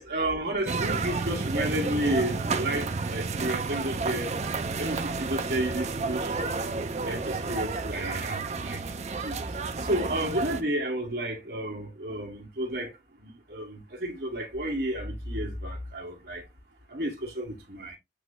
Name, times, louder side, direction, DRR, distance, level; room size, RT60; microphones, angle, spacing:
voice 1, 0.0-4.3 4.8-6.6 7.0-8.8 9.2-9.4 9.8-12.9 13.2-16.4 16.9-18.0, right 1 dB, 55° right, 1.8 m, -31 dB
sound 1, 0.7-10.6, right 4 dB, 35° right, 0.5 m, -31 dB
8.0 x 2.9 x 2.2 m
head